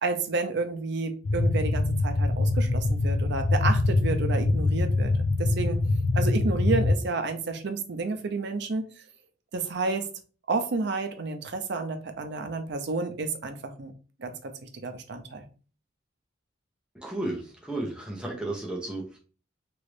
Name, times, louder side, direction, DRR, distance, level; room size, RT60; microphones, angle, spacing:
voice 1, 0.0-5.1 5.4-5.8 6.1-8.8 9.5-10.1 10.5-13.9 14.2-15.5, right 3 dB, 65° right, 0.6 m, -30 dB
sound 1, 1.2-7.0, left 2 dB, 60° left, 0.4 m, -24 dB
voice 2, 16.9-19.2, right 2 dB, 5° right, 0.7 m, -33 dB
3.0 x 2.5 x 3.3 m
head